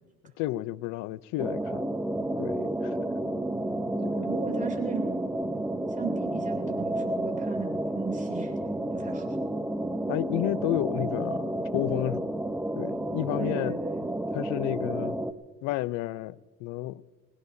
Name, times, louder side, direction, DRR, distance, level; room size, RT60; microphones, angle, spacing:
voice 1, 0.4-1.9 2.4-3.0 4.0-4.3 10.1-12.3 12.8-13.8 14.3-15.2 15.6-17.0, left 16 dB, 70° left, 0.6 m, -31 dB
sound 1, 1.4-15.3, right 1 dB, 5° right, 0.9 m, -31 dB
voice 2, 3.7-5.2 5.9-8.5 8.9-9.4 13.4-14.1, right 5 dB, 25° right, 7.1 m, -37 dB
25.0 x 20.0 x 2.8 m
supercardioid pair, 90°, 30 cm